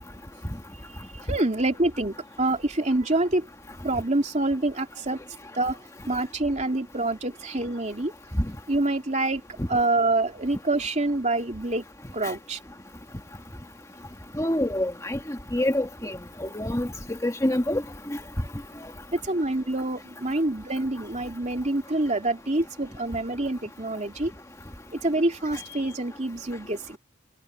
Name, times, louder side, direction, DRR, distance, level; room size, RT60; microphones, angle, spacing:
voice 1, 1.3-3.5 3.8-5.2 5.5-5.8 6.1-8.1 8.7-9.4 9.7-11.8 12.1-12.6 19.1-24.3 24.9-27.0, right 2 dB, 35° right, 2.8 m, -26 dB
voice 2, 14.3-17.8 18.1-18.2, left 1 dB, 15° left, 1.8 m, -27 dB
head